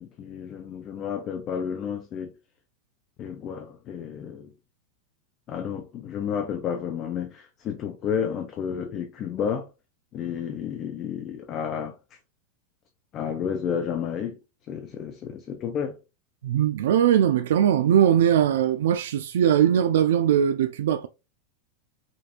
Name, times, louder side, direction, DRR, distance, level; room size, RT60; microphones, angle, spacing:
voice 1, 0.0-2.3 3.2-4.5 5.5-9.7 10.1-12.2 13.1-14.4 14.7-16.0, left 7 dB, 25° left, 0.5 m, -31 dB
voice 2, 16.4-21.1, right 9 dB, 90° right, 0.3 m, -20 dB
5.1 x 2.4 x 2.8 m
supercardioid pair, 175°, 0 cm